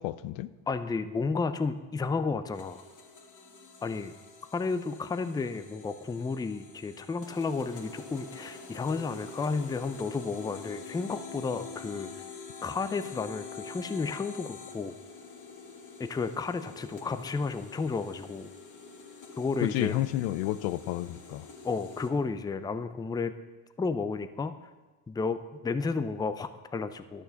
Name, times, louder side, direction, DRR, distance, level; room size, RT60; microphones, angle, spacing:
voice 1, 0.0-0.5 19.6-21.5, left 14 dB, 90° left, 0.6 m, -31 dB
voice 2, 0.7-2.8 3.8-4.1 4.5-12.2 12.6-14.9 16.0-18.5 19.4-20.0 21.6-23.3 23.8-24.5 25.1-27.2, left 4 dB, 10° left, 0.4 m, -32 dB
sound 1, 2.5-22.1, left 5 dB, 40° left, 1.6 m, -46 dB
11.0 x 6.8 x 5.7 m
cardioid pair, 95°, 45 cm